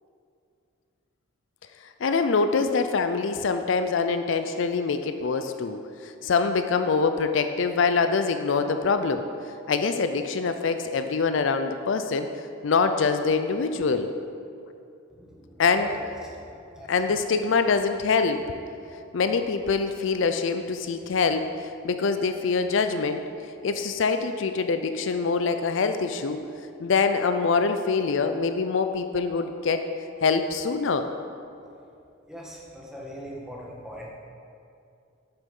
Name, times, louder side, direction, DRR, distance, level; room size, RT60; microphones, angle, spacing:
voice 1, 1.8-9.2 9.7-12.3 12.6-14.1 15.6-16.0 16.9-18.4 19.1-23.2 23.6-26.4 26.8-29.8 30.2-31.1, left 4 dB, 65° left, 8 dB, 0.4 m, -24 dB
voice 2, 32.9-33.6 33.8-34.1, equal, 5° right, -4 dB, 1.6 m, -39 dB
10.0 x 7.0 x 5.4 m, 2.5 s
head